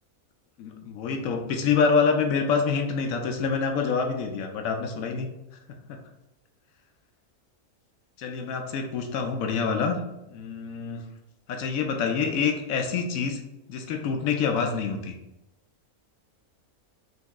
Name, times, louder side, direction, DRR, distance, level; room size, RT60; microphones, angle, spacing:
voice 1, 0.6-5.3 8.2-10.0 10.3-11.0 11.5-13.4 13.7-15.1, left 5 dB, 70° left, 4 dB, 1.0 m, -26 dB
5.3 x 2.8 x 3.5 m, 0.93 s
omnidirectional pair, 1.6 m